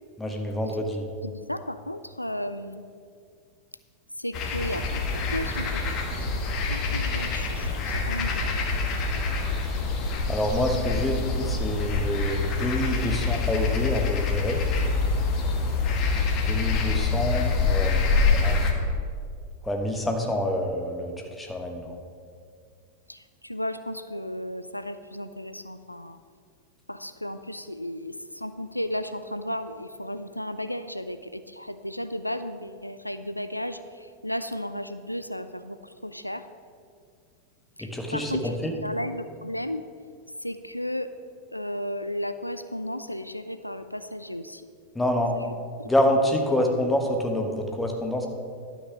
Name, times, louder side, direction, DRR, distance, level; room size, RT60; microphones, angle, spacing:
voice 1, 0.2-1.1 10.3-14.7 16.4-18.7 19.6-22.0 37.8-38.7 44.9-45.3 45.8-48.3, left 1 dB, 10° left, 3 dB, 1.3 m, -27 dB
voice 2, 1.2-2.8 4.2-6.0 6.2-8.7 23.1-26.2 26.9-36.5 37.8-38.6 38.8-39.8 40.4-41.1 41.5-44.7 45.3-45.5 45.8-45.9, left 1 dB, 90° left, 11 dB, 0.3 m, -34 dB
sound 1, 4.3-18.7, left 4 dB, 35° left, 1.4 m, -26 dB
11.5 x 5.9 x 5.9 m, 2.2 s
figure-of-eight pair, 90°, 0 cm